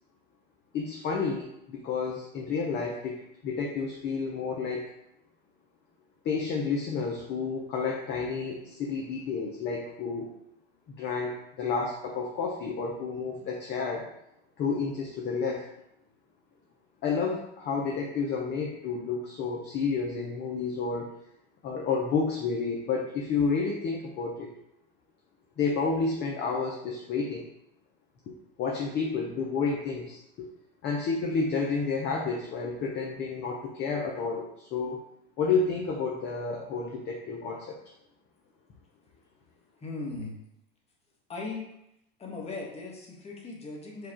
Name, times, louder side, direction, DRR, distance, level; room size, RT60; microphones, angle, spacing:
voice 1, 0.7-4.9 6.2-10.3 10.9-14.1 14.6-15.7 17.0-21.1 21.6-24.5 25.6-27.5 28.3-30.5 30.8-35.0 35.4-37.8, left 4 dB, 35° left, 0 dB, 0.7 m, -30 dB
voice 2, 39.8-40.4 41.3-41.7 42.2-44.1, left 3 dB, 20° left, -1 dB, 1.2 m, -38 dB
4.8 x 2.4 x 4.4 m, 0.81 s
supercardioid pair, 110°, 31 cm